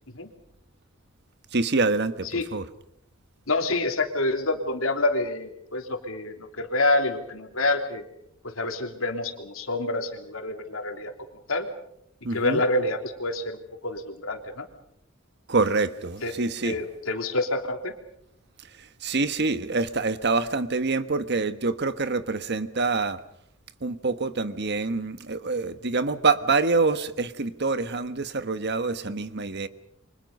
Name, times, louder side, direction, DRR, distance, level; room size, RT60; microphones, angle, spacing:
voice 1, 1.5-2.6 12.2-12.6 15.5-16.7 19.0-23.2 23.8-29.7, right 3 dB, 55° right, 12 dB, 1.3 m, -26 dB
voice 2, 3.5-8.0 8.4-11.1 11.5-11.7 12.3-14.7 16.2-16.4 16.6-17.9, left 2 dB, 85° left, 5 dB, 3.3 m, -27 dB
28.5 x 25.0 x 5.4 m, 0.74 s
head